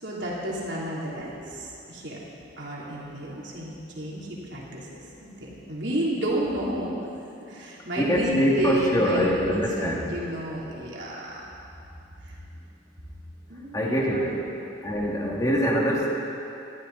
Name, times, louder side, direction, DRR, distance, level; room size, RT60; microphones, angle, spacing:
voice 1, 0.0-2.2 2.6-4.9 5.2-7.1 7.5-11.4 12.2-12.4 13.5-14.5, right 1 dB, 70° right, -5 dB, 3.4 m, -31 dB
voice 2, 8.0-10.1 13.7-14.4 14.8-16.1, equal, 20° left, -3 dB, 2.3 m, -24 dB
21.5 x 13.5 x 4.1 m, 2.7 s
head